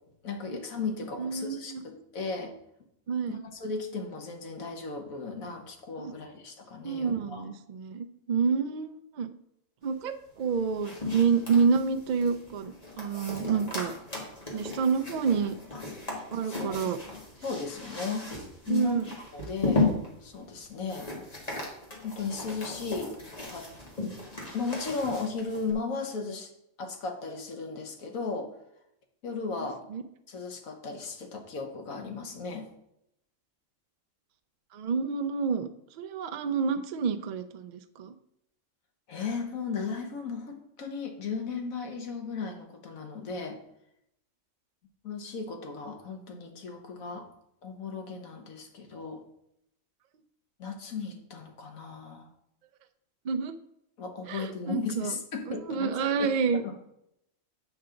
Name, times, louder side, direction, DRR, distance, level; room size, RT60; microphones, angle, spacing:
voice 1, 0.2-2.5 3.3-7.4 15.7-15.8 16.4-16.9 17.4-18.3 18.6-19.0 19.3-19.9 20.2-21.1 22.0-23.2 23.5-23.7 24.5-26.5 26.8-28.5 29.2-29.8 30.3-32.7 39.1-43.6 45.0-47.3 47.6-49.2 50.6-52.3 54.0-56.3 56.6-56.9, left 4 dB, 85° left, 4 dB, 1.5 m, -36 dB
voice 2, 1.2-1.8 3.1-3.4 6.0-6.1 6.8-9.3 9.8-13.9 14.5-15.6 16.3-17.0 18.7-19.0 29.9-30.0 34.7-35.7 36.0-38.1 53.2-53.6 54.3-55.1 55.5-56.6, right 5 dB, 80° right, 8 dB, 0.4 m, -28 dB
sound 1, 10.4-25.7, left 3 dB, 30° left, 1.7 m, -36 dB
7.7 x 5.8 x 3.8 m, 0.78 s
omnidirectional pair, 1.4 m